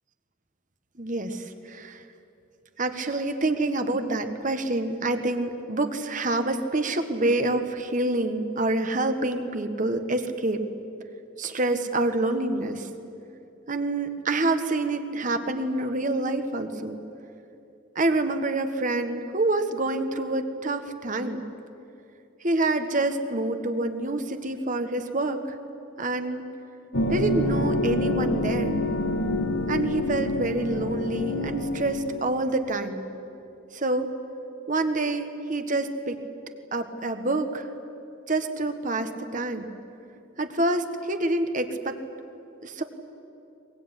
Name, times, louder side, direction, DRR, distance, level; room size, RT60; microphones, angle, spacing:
voice 1, 1.0-2.0 2.8-10.6 11.4-12.9 13.7-17.0 17.9-21.4 22.4-25.5 26.0-26.4 27.1-28.8 29.7-33.0 33.7-34.1 34.7-36.2 36.7-37.7 38.3-39.7 40.4-42.0 42.6-42.8, right 2 dB, 40° right, 7 dB, 1.6 m, -27 dB
sound 1, 26.9-32.2, left 1 dB, 70° left, 1.7 m, -27 dB
23.0 x 20.5 x 9.9 m, 2.7 s
head